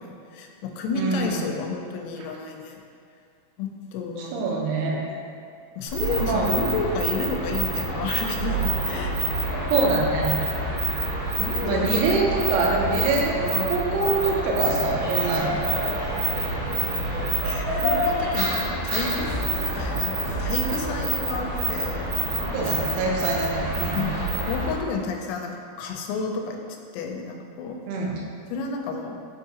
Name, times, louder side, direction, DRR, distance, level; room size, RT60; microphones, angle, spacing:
voice 1, 0.0-2.8 3.6-4.6 5.8-9.1 11.4-12.0 17.4-19.3 19.7-22.8 23.9-26.6 26.9-27.8 28.5-29.2, left 4 dB, 85° left, 2 dB, 3.3 m, -31 dB
voice 2, 1.0-1.5 4.2-5.0 6.2-6.5 9.7-10.4 11.6-15.9 22.5-24.1 27.9-28.2, right 3 dB, 90° right, -1 dB, 3.6 m, -25 dB
sound 1, 5.9-24.8, right 2 dB, 65° right, 2.3 m, -27 dB
sound 2, 19.0-24.0, left 1 dB, 65° left, 2.5 m, -36 dB
7.3 x 4.6 x 2.8 m, 2.3 s
omnidirectional pair, 6.0 m